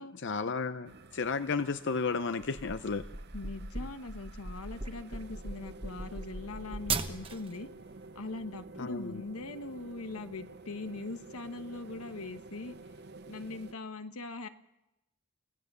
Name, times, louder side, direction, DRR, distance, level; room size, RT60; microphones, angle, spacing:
voice 1, 0.0-3.0 8.8-9.2, left 4 dB, 55° left, 11 dB, 0.6 m, -33 dB
sound 1, 0.9-13.7, right 3 dB, 50° right, 0.7 m, -51 dB
sound 2, 2.4-7.6, right 4 dB, 25° right, 1.1 m, -38 dB
voice 2, 3.3-7.7 8.1-12.7 13.3-14.5, left 2 dB, 80° left, 9 dB, 1.2 m, -41 dB
25.5 x 16.0 x 6.8 m, 0.95 s
head